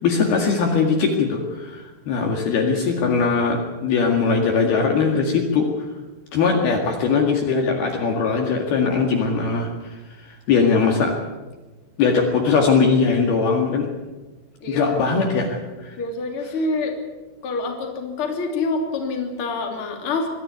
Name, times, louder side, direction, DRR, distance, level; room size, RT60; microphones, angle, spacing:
voice 1, 0.0-5.7 6.3-9.7 10.2-11.1 12.0-13.9 14.7-16.0, left 5 dB, 60° left, 1 dB, 3.6 m, -20 dB
voice 2, 14.6-15.0 16.0-17.0 17.4-20.3, left 3 dB, 30° left, 2 dB, 3.2 m, -26 dB
23.5 x 14.0 x 9.4 m, 1.2 s
omnidirectional pair, 5.7 m